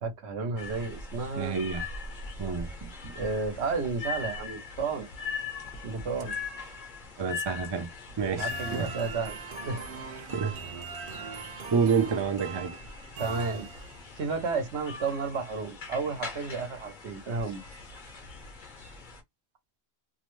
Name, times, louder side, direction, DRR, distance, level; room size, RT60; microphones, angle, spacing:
voice 1, 0.0-1.6 3.1-5.1 5.8-6.3 8.3-9.8 13.2-13.7 14.2-17.6, right 4 dB, 80° right, 1.2 m, -32 dB
sound 1, 0.6-19.2, left 4 dB, 50° left, 0.9 m, -41 dB
voice 2, 1.4-1.9 2.4-3.1 7.2-7.9 8.2-8.9 10.2-10.5 11.7-12.8, right 6 dB, 30° right, 0.5 m, -29 dB
sound 2, 8.5-14.2, right 5 dB, 60° right, 0.8 m, -41 dB
2.8 x 2.1 x 3.0 m
omnidirectional pair, 1.1 m